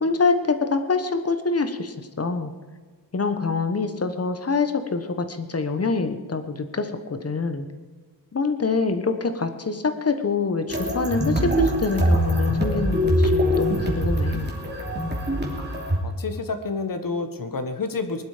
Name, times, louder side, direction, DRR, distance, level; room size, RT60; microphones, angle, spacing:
voice 1, 0.0-2.5 3.1-7.7 8.3-14.5, left 4 dB, 35° left, 9 dB, 1.3 m, -25 dB
sound 1, 10.7-16.0, equal, 25° right, 2.9 m, -23 dB
voice 2, 16.0-18.2, left 4 dB, 55° left, 8 dB, 1.6 m, -29 dB
21.0 x 11.5 x 5.1 m, 1.5 s
wide cardioid pair, 155°, 40 cm